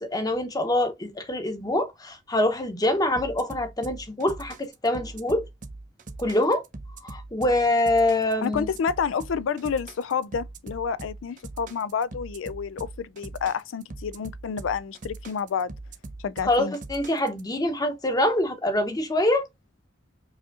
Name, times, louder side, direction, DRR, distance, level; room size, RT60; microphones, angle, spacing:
voice 1, 0.1-5.4 6.2-6.6 7.0-8.7 16.5-19.5, left 1 dB, 20° left, 0.8 m, -25 dB
sound 1, 3.2-17.4, right 2 dB, 40° right, 0.6 m, -41 dB
voice 2, 8.4-15.7 16.2-16.8, left 6 dB, 90° left, 0.4 m, -29 dB
4.9 x 2.7 x 2.4 m
head